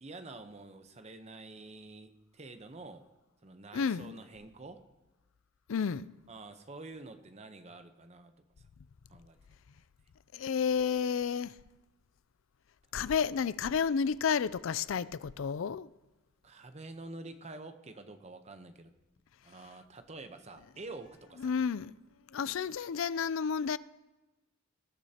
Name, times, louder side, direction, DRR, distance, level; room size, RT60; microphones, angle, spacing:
voice 1, 0.0-3.1 3.4-4.8 6.3-8.7 9.1-9.4 16.4-18.9 19.4-21.6, right 2 dB, 30° right, 0.8 m, -48 dB
voice 2, 3.7-4.2 5.7-6.1 10.3-11.5 12.9-15.9 21.4-21.9 22.3-23.8, left 6 dB, 65° left, 0.4 m, -31 dB
20.0 x 12.0 x 2.9 m
head